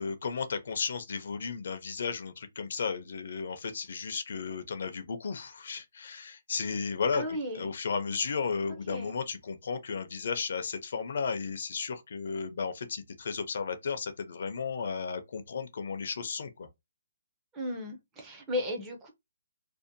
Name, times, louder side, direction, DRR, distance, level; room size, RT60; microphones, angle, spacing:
voice 1, 0.0-7.2 7.5-16.7, left 5 dB, 50° left, 0.5 m, -34 dB
voice 2, 7.1-7.7 8.9-9.1 17.5-19.1, left 1 dB, 10° right, 0.4 m, -35 dB
2.6 x 2.1 x 2.5 m
hypercardioid pair, 175°, 0 cm